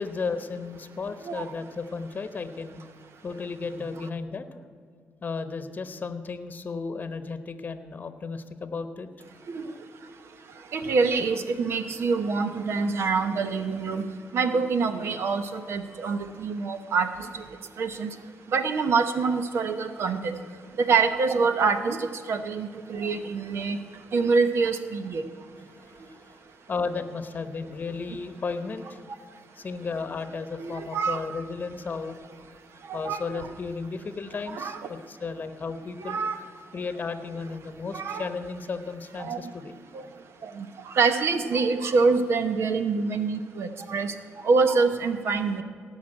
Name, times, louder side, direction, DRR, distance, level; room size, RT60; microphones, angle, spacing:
voice 1, 0.0-2.8 3.2-4.6 5.2-9.1 17.7-18.1 25.7-26.3 26.7-29.0 29.5-32.2 32.9-36.2 36.7-39.8, left 4 dB, 40° left, 10 dB, 0.9 m, -34 dB
voice 2, 10.7-14.0 14.3-17.1 17.3-17.4 17.8-18.1 18.5-20.4 20.8-23.8 24.1-25.2 30.6-31.2 32.9-33.5 34.5-34.8 36.0-36.4 37.9-38.3 39.2-39.4 40.4-40.7 40.9-44.1 44.4-45.6, right 4 dB, 70° right, 9 dB, 0.9 m, -25 dB
17.0 x 5.8 x 8.7 m, 2.1 s
cardioid pair, 95°, 5 cm